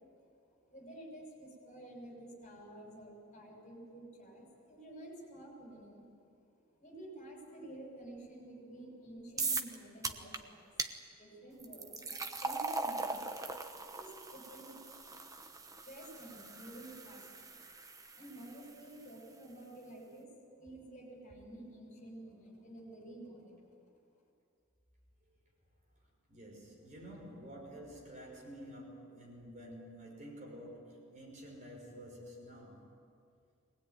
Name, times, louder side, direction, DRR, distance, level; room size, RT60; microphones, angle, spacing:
voice 1, 0.5-6.1 6.7-10.7 11.1-13.4 13.9-14.8 15.8-17.4 18.1-20.3 20.6-23.8, right 1 dB, 35° left, 0 dB, 6.4 m, -51 dB
sound 1, 9.4-9.7 10.0-10.4 10.8-10.9 11.6-18.7, right 3 dB, 15° right, 1.1 m, -40 dB
voice 2, 26.3-32.9, equal, 35° right, -1 dB, 6.0 m, -50 dB
24.0 x 19.5 x 9.4 m, 2.4 s
head